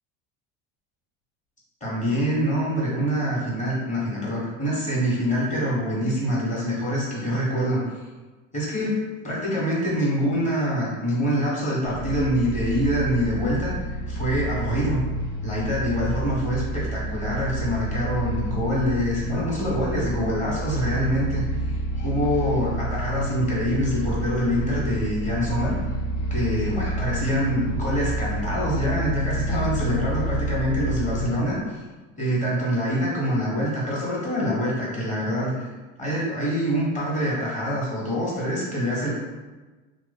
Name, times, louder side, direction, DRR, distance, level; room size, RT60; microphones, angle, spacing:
voice 1, 1.8-7.8 8.5-15.0 15.4-25.8 26.3-31.8 32.2-35.7 36.0-39.1, equal, 20° left, -6 dB, 1.3 m, -25 dB
sound 1, 11.8-31.3, right 1 dB, 45° left, 0.6 m, -29 dB
3.0 x 2.4 x 4.1 m, 1.3 s
cardioid pair, 130°, 36 cm